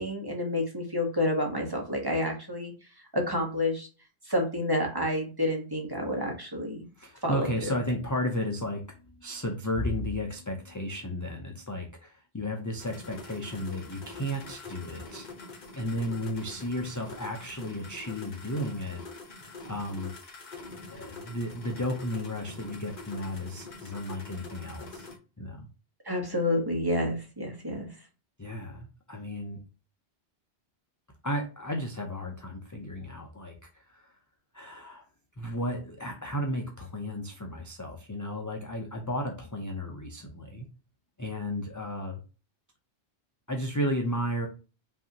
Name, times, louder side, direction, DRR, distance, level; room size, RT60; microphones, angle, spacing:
voice 1, 0.0-2.7 3.1-3.9 4.2-6.9 7.2-7.7 26.0-27.9, left 1 dB, 20° right, 1 dB, 1.1 m, -29 dB
voice 2, 7.0-15.3 15.7-19.0 19.6-20.1 20.9-25.1 25.4-25.7 28.4-29.6 31.2-34.1 34.5-35.0 35.4-40.7 41.2-42.2 43.5-44.5, equal, 25° left, 1 dB, 0.4 m, -33 dB
sound 1, 12.8-25.2, left 3 dB, 45° left, 1.1 m, -45 dB
5.4 x 2.7 x 2.7 m, 0.33 s
omnidirectional pair, 1.1 m